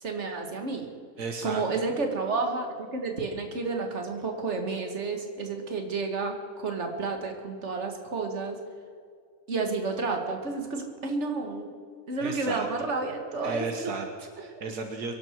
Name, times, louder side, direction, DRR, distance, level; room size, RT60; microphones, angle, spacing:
voice 1, 0.0-0.9 1.4-8.6 9.5-11.7 12.1-14.0, right 3 dB, 45° right, 3 dB, 2.2 m, -31 dB
voice 2, 1.2-1.7 12.2-12.7 13.4-15.1, right 4 dB, 75° right, 4 dB, 1.7 m, -34 dB
23.5 x 12.0 x 4.7 m, 2.2 s
omnidirectional pair, 1.7 m